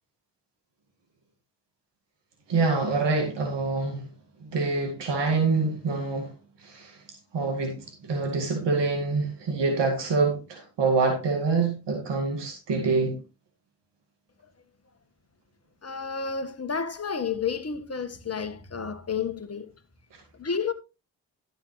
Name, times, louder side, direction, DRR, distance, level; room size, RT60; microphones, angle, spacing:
voice 1, 2.5-4.1 4.4-6.3 6.6-7.0 7.3-13.2 20.1-20.2, right 4 dB, 70° right, 2.1 m, -26 dB
voice 2, 15.8-19.7 20.3-20.7, left 6 dB, 35° left, 1.5 m, -31 dB
11.5 x 7.8 x 3.2 m
hypercardioid pair, 45°, 44 cm